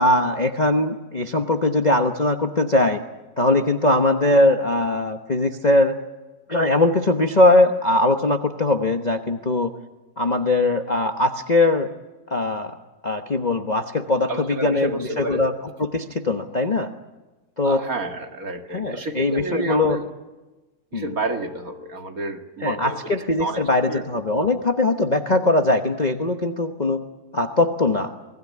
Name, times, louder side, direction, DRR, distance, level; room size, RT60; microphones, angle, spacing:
voice 1, 0.0-3.0 3.4-6.0 6.5-9.7 10.2-11.9 12.3-12.8 13.0-15.5 15.8-16.9 17.6-17.8 18.7-20.0 20.9-21.1 22.6-27.0 27.3-28.1, left 2 dB, 30° left, 5 dB, 1.0 m, -20 dB
voice 2, 14.3-15.5 17.6-20.1 20.9-24.1, right 2 dB, 50° right, 4 dB, 2.4 m, -30 dB
28.5 x 20.5 x 9.6 m, 1.2 s
omnidirectional pair, 2.0 m